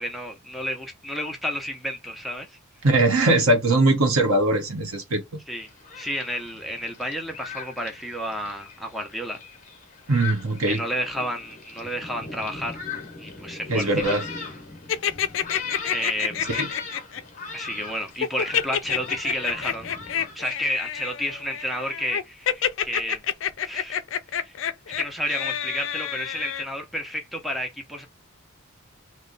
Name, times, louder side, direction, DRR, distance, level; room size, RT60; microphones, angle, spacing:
voice 1, 0.0-2.6 5.5-5.7 5.9-9.4 10.7-12.8 13.2-14.0 15.9-16.6 17.5-19.9 20.3-23.2 23.6-24.0 24.3-28.1, equal, ahead, 0.6 m, -31 dB
voice 2, 2.8-5.2 10.1-10.8 13.7-14.2 16.5-16.7, right 2 dB, 90° right, 1.1 m, -21 dB
Thunderstorm, 5.5-20.4, left 5 dB, 35° left, 0.8 m, -39 dB
sound 1, 14.9-17.2 18.2-26.6, left 9 dB, 60° left, 0.3 m, -28 dB
3.0 x 2.1 x 3.8 m
head